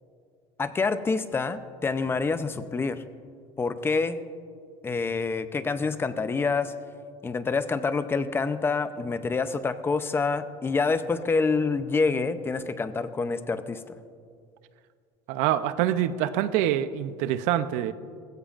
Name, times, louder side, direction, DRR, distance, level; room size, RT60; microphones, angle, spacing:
voice 1, 0.6-3.0 3.6-4.2 4.8-6.7 7.2-13.8, left 4 dB, 20° left, 11 dB, 0.6 m, -27 dB
voice 2, 15.3-17.9, right 11 dB, 75° right, 13 dB, 0.7 m, -25 dB
19.5 x 15.5 x 2.5 m, 2.2 s
cardioid pair, 130°, 12 cm